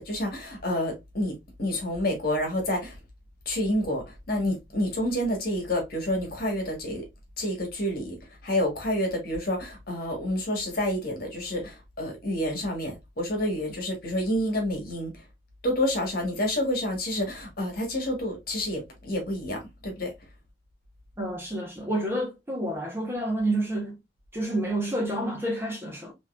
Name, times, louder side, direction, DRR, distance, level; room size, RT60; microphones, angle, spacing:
voice 1, 0.0-3.0 3.4-7.0 7.4-8.1 8.4-15.1 15.6-20.1, left 1 dB, 50° left, 1.5 m, -29 dB
voice 2, 21.2-24.0 24.3-26.1, right 1 dB, 15° right, 1.1 m, -29 dB
4.0 x 3.0 x 2.5 m
head